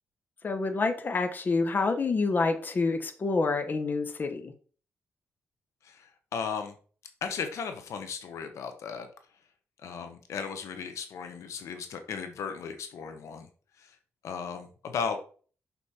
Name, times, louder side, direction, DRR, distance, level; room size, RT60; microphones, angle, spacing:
voice 1, 0.4-4.5, left 3 dB, 40° left, 6 dB, 1.1 m, -27 dB
voice 2, 5.8-6.7 7.2-9.1 9.8-13.5 13.8-13.9 14.2-15.2, left 6 dB, 80° left, 7 dB, 1.1 m, -36 dB
6.2 x 5.4 x 4.3 m, 0.41 s
cardioid pair, 100°, 5 cm